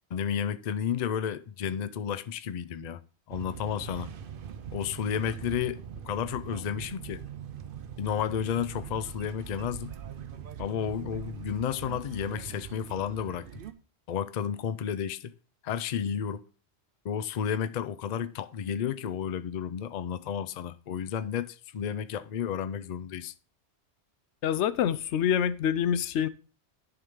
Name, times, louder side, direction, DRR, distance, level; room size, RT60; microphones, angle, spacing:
voice 1, 0.1-3.0 3.3-4.1 4.7-5.8 6.0-7.2 8.0-9.9 10.6-13.6 14.1-15.3 15.6-16.4 17.0-23.3, left 8 dB, 50° left, 0.5 m, -32 dB
sound 1, 3.3-13.7, right 8 dB, 60° right, 0.8 m, -42 dB
voice 2, 24.4-26.3, left 9 dB, 85° left, 0.9 m, -26 dB
11.0 x 3.7 x 4.8 m
omnidirectional pair, 1.1 m